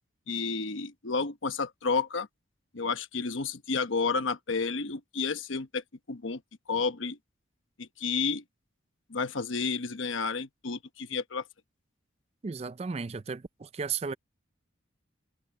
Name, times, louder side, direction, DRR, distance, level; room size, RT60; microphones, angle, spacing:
voice 1, 0.3-2.3 2.7-5.8 6.1-6.4 6.7-7.2 7.8-8.4 9.1-11.4, left 4 dB, 75° left, 1.0 m, -31 dB
voice 2, 12.4-14.1, right 5 dB, 30° right, 0.4 m, -34 dB
head